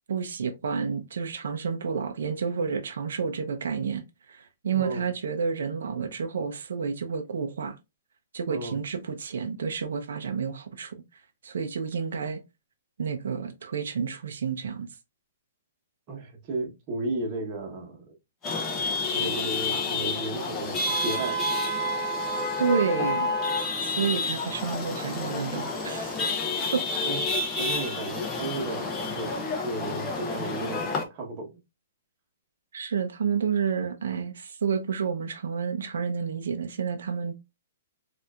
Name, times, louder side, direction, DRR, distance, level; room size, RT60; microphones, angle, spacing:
voice 1, 0.1-7.8 8.3-12.4 13.0-14.9 22.6-23.3 23.8-26.2 26.7-26.9 32.7-37.3, right 6 dB, 75° right, 0.6 m, -30 dB
voice 2, 4.7-5.1 8.5-8.8 16.1-18.1 19.1-21.4 27.0-31.5, right 2 dB, 25° right, 1.0 m, -34 dB
Chatter / Vehicle horn car horn honking / Traffic noise roadway noise, 18.4-31.0, left 2 dB, 15° left, 0.7 m, -29 dB
4.3 x 2.5 x 2.3 m
hypercardioid pair, 170°, 0 cm